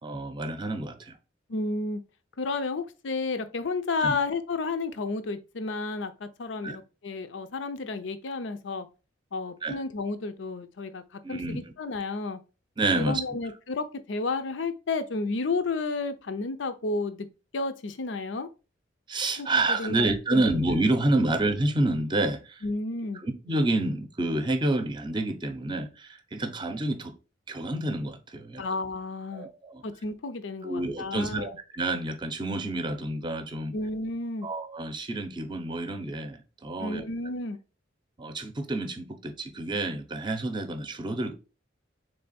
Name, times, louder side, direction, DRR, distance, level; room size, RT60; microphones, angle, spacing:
voice 1, 0.0-1.2 4.0-4.2 6.6-6.8 9.6-9.8 11.2-11.6 12.8-13.2 19.1-22.6 23.2-27.1 27.5-28.6 29.3-29.8 30.6-33.7 34.4-37.0 38.2-41.3, right 2 dB, 25° right, 0.6 m, -28 dB
voice 2, 1.5-2.0 2.4-8.9 9.3-12.4 13.0-17.3 17.5-18.5 19.4-20.6 21.3-21.4 22.6-23.2 28.6-29.5 29.8-31.5 33.7-34.5 36.8-37.6, left 3 dB, 70° left, 0.6 m, -32 dB
3.8 x 3.3 x 4.1 m
head